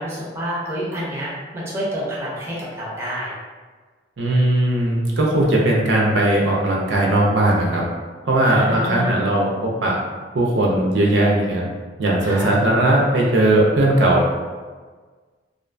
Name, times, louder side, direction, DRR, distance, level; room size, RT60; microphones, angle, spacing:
voice 1, 0.0-3.3 8.5-9.2 12.2-12.5, equal, 15° right, -6 dB, 0.5 m, -28 dB
voice 2, 4.2-7.8 8.2-10.0 10.3-11.6 12.0-14.2, right 1 dB, 70° right, -2 dB, 0.4 m, -18 dB
2.4 x 2.2 x 2.4 m, 1.4 s
head